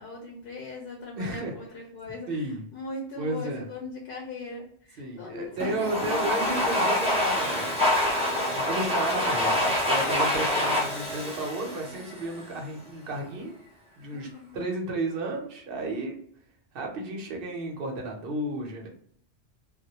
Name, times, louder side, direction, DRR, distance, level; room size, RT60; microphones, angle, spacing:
voice 1, 0.0-7.0 14.1-14.6, left 2 dB, 60° left, -1 dB, 0.7 m, -40 dB
voice 2, 1.2-1.5 2.3-2.6 3.2-3.7 5.0-7.8 8.5-13.6 14.0-14.3 14.5-16.2 16.7-18.9, right 2 dB, 60° right, 1 dB, 0.8 m, -33 dB
Domestic sounds home sounds, 5.6-12.5, left 1 dB, 10° right, 0.4 m, -26 dB
2.2 x 2.1 x 2.8 m, 0.62 s
omnidirectional pair, 1.2 m